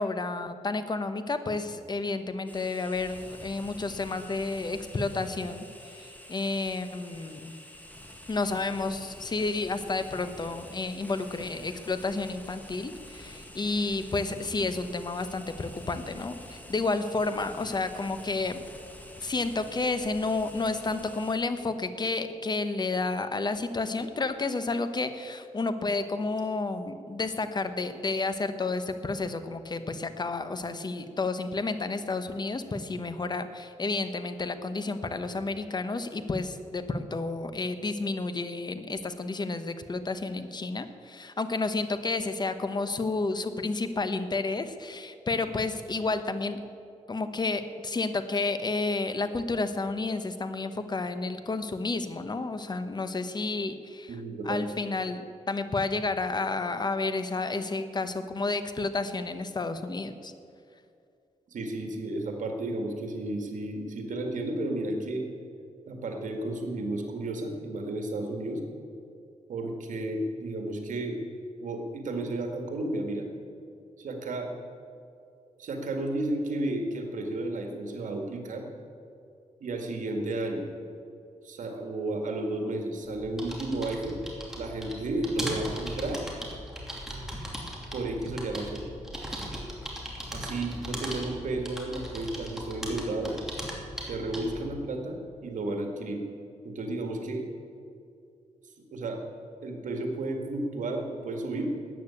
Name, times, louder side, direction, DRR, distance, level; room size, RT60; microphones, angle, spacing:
voice 1, 0.0-5.7 6.0-7.5 8.3-18.6 19.2-46.6 47.1-54.1 54.4-55.2 55.5-60.3, left 3 dB, 35° left, 10 dB, 1.0 m, -31 dB
sound 1, 2.5-21.4, left 1 dB, 10° left, 1.6 m, -47 dB
voice 2, 54.1-54.6 61.5-65.2 65.9-68.6 69.5-71.2 71.6-73.3 74.0-74.5 75.6-78.7 79.6-80.7 81.4-84.2 84.6-86.2 87.9-88.9 90.3-93.4 94.0-96.2 96.6-97.4 98.9-99.2 99.6-101.7, right 2 dB, 85° right, 3 dB, 2.0 m, -32 dB
sound 2, 83.0-94.7, equal, 5° right, 2.8 m, -38 dB
13.5 x 9.0 x 8.5 m, 2.5 s
wide cardioid pair, 110°, 13 cm